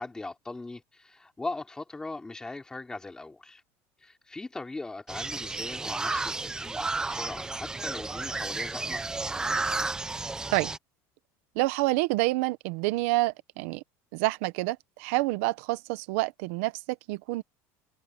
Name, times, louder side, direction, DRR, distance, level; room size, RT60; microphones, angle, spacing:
voice 1, 0.0-3.6 4.0-9.0, left 2 dB, 10° left, 3.5 m, -39 dB
sound 1, 5.1-10.8, right 3 dB, 10° right, 0.8 m, -32 dB
voice 2, 11.5-13.8 14.1-17.4, right 20 dB, 75° right, 1.2 m, -28 dB
cardioid pair, 155°, 8 cm